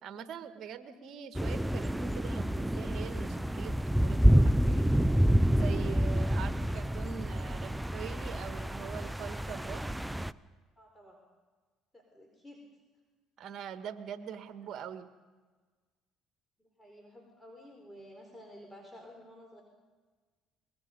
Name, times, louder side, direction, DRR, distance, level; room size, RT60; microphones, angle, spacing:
voice 1, 0.0-4.9 5.5-9.8 13.4-15.1, right 8 dB, 55° right, 9 dB, 1.6 m, -43 dB
sound 1, 1.3-10.3, equal, 5° right, 0.6 m, -28 dB
voice 2, 10.8-11.2 11.9-12.6 16.8-19.6, equal, 10° left, 1 dB, 4.5 m, -52 dB
23.5 x 21.0 x 5.3 m, 1.4 s
hypercardioid pair, 70°, 0 cm